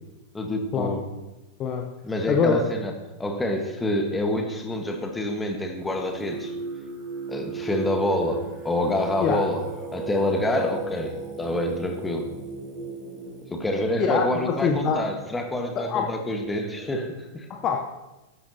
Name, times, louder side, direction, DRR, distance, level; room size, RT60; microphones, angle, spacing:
voice 1, 0.3-1.0 2.0-2.9 3.2-6.5 7.3-9.6 9.9-12.3 13.5-17.5, left 1 dB, 10° left, 4 dB, 1.5 m, -27 dB
voice 2, 2.3-2.6 9.2-9.4 14.0-15.1 15.8-16.1 17.5-17.8, left 6 dB, 30° left, 3 dB, 0.8 m, -24 dB
Singing, 5.8-13.7, right 4 dB, 20° right, 3.8 m, -36 dB
12.5 x 11.0 x 2.8 m, 1.1 s
figure-of-eight pair, 90°, 0 cm